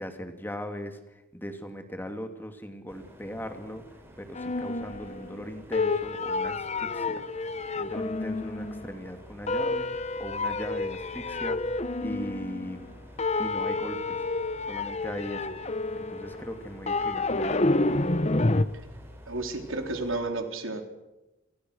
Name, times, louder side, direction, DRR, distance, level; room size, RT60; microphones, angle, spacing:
voice 1, 0.0-3.8 4.2-7.2 7.8-9.9 10.2-11.6 12.0-12.9 13.4-14.2 14.7-17.7, equal, 10° left, 6 dB, 2.8 m, -39 dB
sound 1, 2.9-20.2, equal, 10° right, 5.6 m, -50 dB
sound 2, 4.4-5.4 5.7-9.0 9.5-12.9 13.2-18.6, left 2 dB, 35° left, 1.1 m, -29 dB
voice 2, 19.3-20.8, right 2 dB, 85° right, 5 dB, 4.1 m, -32 dB
30.0 x 28.0 x 6.6 m, 0.99 s
head